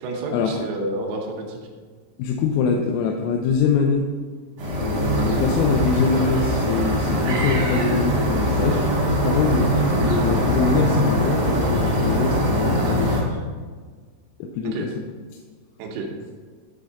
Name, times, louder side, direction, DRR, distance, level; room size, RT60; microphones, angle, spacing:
voice 1, 0.0-1.6 14.6-14.9 15.8-16.1, right 2 dB, 85° right, 0 dB, 3.7 m, -29 dB
voice 2, 2.2-4.1 4.8-8.8 9.2-13.4 14.4-14.9, left 5 dB, 90° left, 2 dB, 3.3 m, -24 dB
sound 1, 4.6-13.2, equal, 65° right, 1.8 m, -22 dB
10.5 x 3.6 x 4.0 m, 1.5 s
omnidirectional pair, 6.0 m